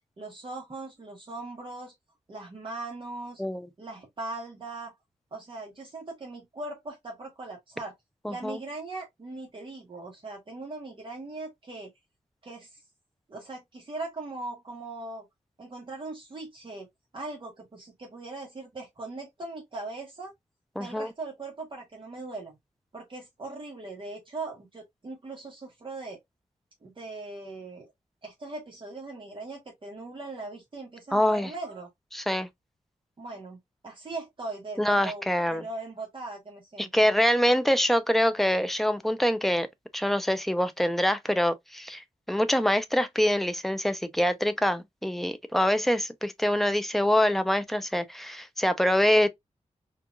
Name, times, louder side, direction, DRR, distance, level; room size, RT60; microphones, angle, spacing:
voice 1, 0.2-1.9 2.3-3.4 3.8-4.9 5.3-7.9 8.3-11.9 12.4-12.8 13.3-15.3 15.6-16.9 17.1-20.3 20.7-22.6 22.9-26.2 26.8-27.9 28.2-31.9 33.2-33.6 33.8-35.2 35.5-37.1, right 2 dB, 40° right, 1.2 m, -39 dB
voice 2, 8.2-8.6 20.8-21.1 31.1-31.5 32.1-32.5 34.8-35.7 36.8-39.7 39.9-49.3, equal, ahead, 0.5 m, -25 dB
4.5 x 2.4 x 2.3 m
wide cardioid pair, 135°, 13 cm